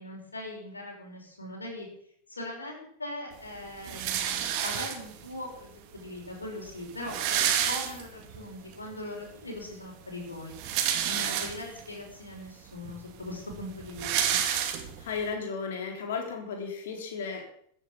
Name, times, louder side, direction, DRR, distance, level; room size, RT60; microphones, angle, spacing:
voice 1, 0.0-1.9 2.3-10.5 11.1-14.4, left 1 dB, 80° left, -1 dB, 5.7 m, -40 dB
sound 1, 3.8-5.3 6.1-6.2 6.4-6.5 6.8-8.4 8.8-8.9 10.3-11.9 12.5-12.6 12.9-15.2, right 9 dB, 45° right, 2.3 m, -29 dB
voice 2, 15.0-17.6, left 5 dB, 60° left, 3 dB, 4.0 m, -34 dB
15.0 x 10.0 x 7.4 m, 0.66 s
figure-of-eight pair, 90°, 0 cm